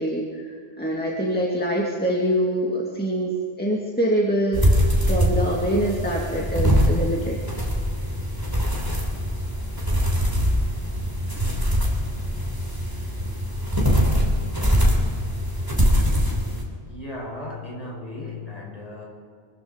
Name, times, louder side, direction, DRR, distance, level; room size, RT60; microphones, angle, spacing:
voice 1, 0.0-7.4, right 1 dB, 10° left, -4 dB, 2.1 m, -25 dB
sound 1, 4.5-16.6, equal, 20° right, 3.0 m, -22 dB
voice 2, 16.9-19.1, left 2 dB, 35° left, -2 dB, 4.5 m, -35 dB
25.0 x 14.0 x 3.9 m, 2.2 s
omnidirectional pair, 1.1 m